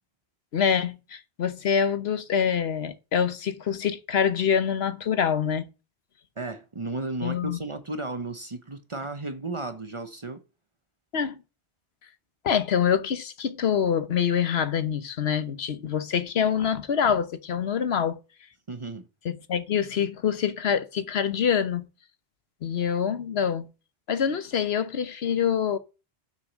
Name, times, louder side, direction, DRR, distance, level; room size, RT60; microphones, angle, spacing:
voice 1, 0.5-5.7 7.2-7.6 11.1-11.4 12.4-18.2 19.2-21.9 22.6-23.7 24.1-25.8, left 7 dB, 70° left, 1.1 m, -25 dB
voice 2, 6.4-10.4 18.7-19.1, right 2 dB, 30° right, 0.8 m, -34 dB
7.0 x 6.2 x 7.3 m
omnidirectional pair, 1.1 m